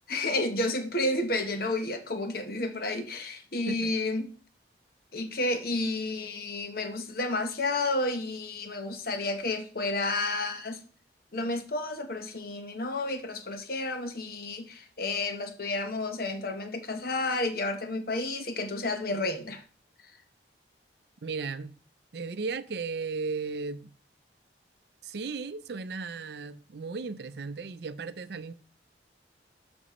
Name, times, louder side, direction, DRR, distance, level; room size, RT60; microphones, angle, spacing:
voice 1, 0.1-4.3 5.1-10.8 11.3-19.6, left 2 dB, 55° left, 1.0 m, -31 dB
voice 2, 21.2-21.8 22.1-23.9 25.0-28.5, right 4 dB, 65° right, 0.5 m, -35 dB
12.0 x 5.2 x 3.1 m
head